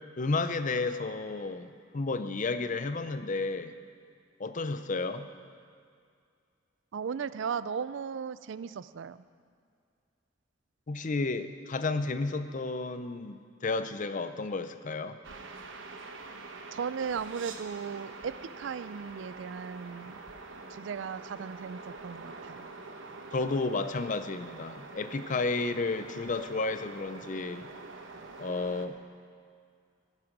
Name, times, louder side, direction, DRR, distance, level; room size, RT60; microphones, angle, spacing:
voice 1, 0.2-3.7 4.4-5.3 10.9-15.2 23.3-27.7 28.4-29.0, left 3 dB, 45° left, 10 dB, 0.6 m, -32 dB
voice 2, 6.9-9.2 16.7-20.2 20.8-22.6, right 6 dB, 70° right, 15 dB, 0.4 m, -36 dB
sound 1, 15.2-28.9, right 3 dB, 85° right, 1.1 m, -45 dB
14.0 x 10.0 x 6.0 m, 2.3 s
head